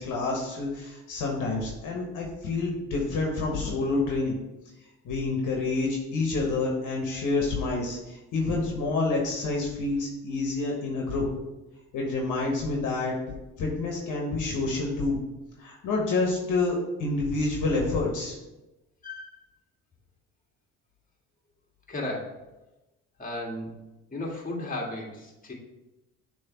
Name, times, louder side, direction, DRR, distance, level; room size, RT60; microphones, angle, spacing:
voice 1, 0.0-4.4 5.0-11.2 11.9-13.1 13.6-15.2 15.6-18.4, left 3 dB, 60° left, -1 dB, 1.3 m, -28 dB
voice 2, 21.9-22.4 23.2-23.8 24.1-25.5, left 1 dB, 25° left, -2 dB, 1.8 m, -34 dB
6.7 x 3.2 x 4.4 m, 1.0 s
hypercardioid pair, 60°, 34 cm